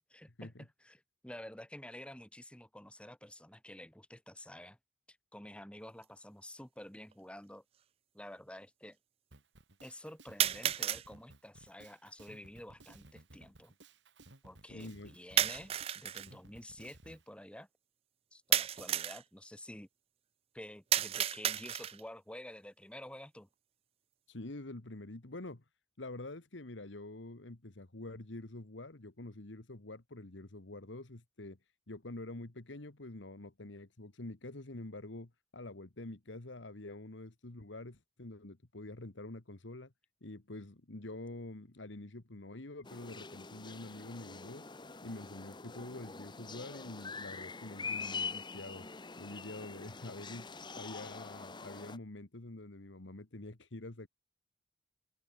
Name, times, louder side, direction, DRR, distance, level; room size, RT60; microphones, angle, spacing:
voice 1, 0.1-4.8 5.1-7.6 8.1-9.0 9.8-13.7 14.4-17.7 18.3-19.9 20.5-23.5, left 1 dB, 5° left, 1.9 m, -50 dB
sound 1, 6.0-6.1 7.1-7.2 10.4-11.1 15.4-16.3 18.5-19.2 20.9-22.1, right 10 dB, 35° right, 0.4 m, -32 dB
Drum kit, 9.3-17.2, right 2 dB, 75° right, 4.1 m, -58 dB
voice 2, 14.7-15.1 24.3-25.6 26.0-39.9 40.2-44.7 45.0-48.9 49.2-54.1, left 2 dB, 85° left, 1.7 m, -47 dB
sound 2, 42.8-52.0, left 5 dB, 25° left, 1.2 m, -44 dB
head